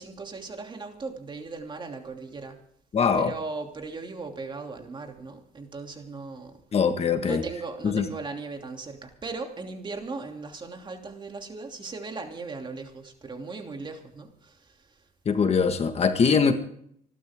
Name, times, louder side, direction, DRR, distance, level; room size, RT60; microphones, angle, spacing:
voice 1, 0.0-2.6 3.1-6.6 7.2-15.0, right 4 dB, 30° right, 4 dB, 2.9 m, -38 dB
voice 2, 2.9-3.3 6.7-7.4 7.8-8.0 15.2-16.5, left 6 dB, 35° left, 7 dB, 1.6 m, -22 dB
28.5 x 12.0 x 3.7 m, 0.69 s
cardioid pair, 110°, 17 cm